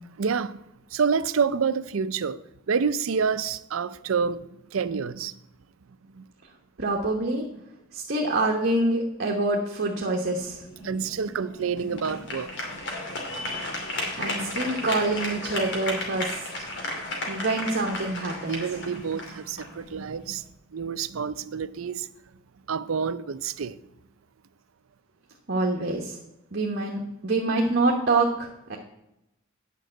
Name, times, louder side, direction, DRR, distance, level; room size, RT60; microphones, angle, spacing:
voice 1, 0.2-0.6 0.9-2.4 2.7-5.3 6.1-6.2 10.8-12.8 13.4-13.5 18.5-20.4 20.7-22.1 22.7-23.8, right 6 dB, 80° right, 0.5 m, -28 dB
voice 2, 6.8-7.5 7.9-10.6 14.0-16.3 17.3-18.6 25.5-26.2 26.5-28.8, right 2 dB, 55° right, 1.1 m, -26 dB
sound 1, 10.4-20.5, left 2 dB, 60° left, 2.6 m, -34 dB
9.3 x 5.4 x 7.7 m
head